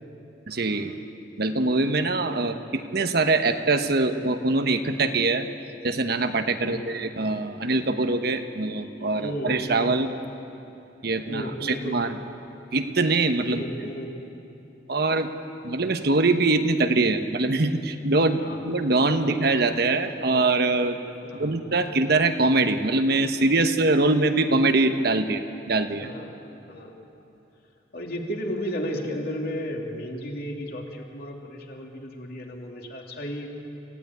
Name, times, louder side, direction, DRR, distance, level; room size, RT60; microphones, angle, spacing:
voice 1, 0.5-1.0 1.4-5.5 5.8-10.1 11.0-12.2 12.7-13.6 14.9-15.3 15.6-21.0 21.3-26.1, right 3 dB, 60° right, 8 dB, 1.1 m, -23 dB
voice 2, 6.6-6.9 9.2-10.0 11.3-12.0 13.5-14.1 18.4-18.6 19.2-19.4 21.2-21.6 26.0-26.3 26.7-27.0 27.9-33.5, equal, 55° left, 0 dB, 2.9 m, -34 dB
28.0 x 15.5 x 9.6 m, 2.8 s
head